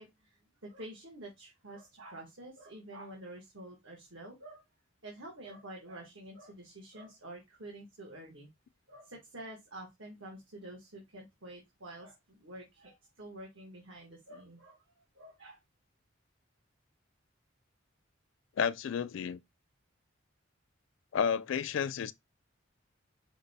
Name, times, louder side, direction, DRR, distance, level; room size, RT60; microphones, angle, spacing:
voice 1, 0.0-4.6 5.0-8.5 8.9-15.6, right 1 dB, 75° right, 1.3 m, -48 dB
voice 2, 18.6-19.4 21.1-22.1, left 7 dB, 70° left, 0.3 m, -31 dB
5.2 x 2.2 x 4.0 m
head